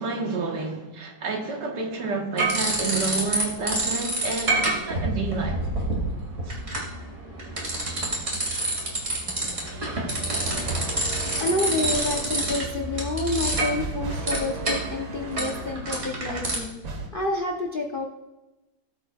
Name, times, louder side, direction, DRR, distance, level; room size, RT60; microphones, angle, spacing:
voice 1, 0.0-5.6 6.5-6.6, right 4 dB, 60° right, 1.9 m, -29 dB
sound 1, 2.4-3.4 3.7-16.6, right 2 dB, 35° right, 2.7 m, -28 dB
sound 2, 9.3-16.0 16.8-17.1, right 3 dB, 85° right, 2.1 m, -37 dB
voice 2, 11.4-18.0, left 2 dB, 55° left, 0.5 m, -29 dB
19.0 x 8.1 x 2.4 m
omnidirectional pair, 2.2 m